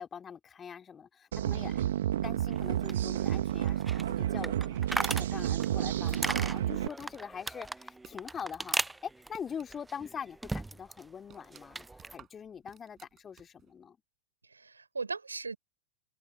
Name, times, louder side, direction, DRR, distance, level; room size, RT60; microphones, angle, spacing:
voice 1, 0.0-1.8 2.2-14.0, left 7 dB, 20° left, 3.3 m, -43 dB
sound 1, 1.3-6.9, right 11 dB, 60° right, 1.7 m, -31 dB
sound 2, 2.5-11.0 11.3-12.2, right 2 dB, 5° right, 0.8 m, -38 dB
sound 3, 5.4-8.5 8.8-10.1 10.4-10.5 10.9-13.7, right 10 dB, 25° right, 7.5 m, -58 dB
voice 2, 14.5-15.6, right 4 dB, 80° right, 5.9 m, -38 dB
figure-of-eight pair, 90°, 0 cm